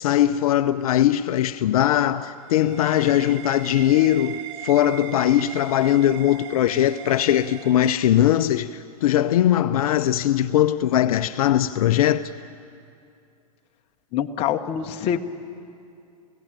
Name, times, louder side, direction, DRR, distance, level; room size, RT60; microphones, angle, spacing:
voice 1, 0.0-12.3, left 12 dB, 60° left, 0.6 m, -20 dB
sound 1, 2.1-8.4, right 10 dB, 45° right, 1.0 m, -39 dB
voice 2, 14.1-15.2, left 9 dB, 30° left, 1.1 m, -25 dB
27.5 x 17.0 x 9.0 m
hypercardioid pair, 140°, 20 cm